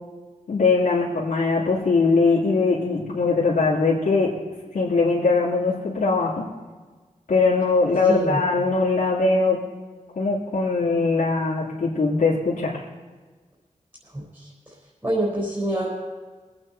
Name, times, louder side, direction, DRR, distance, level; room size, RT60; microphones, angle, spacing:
voice 1, 0.5-4.3 4.7-6.4 7.3-9.6 10.2-12.8, left 3 dB, 85° left, -7 dB, 2.4 m, -21 dB
voice 2, 8.1-8.5 14.1-14.5 15.0-15.9, right 1 dB, 20° right, -6 dB, 4.3 m, -26 dB
22.0 x 8.9 x 4.5 m, 1.4 s
wide cardioid pair, 75°, 14 cm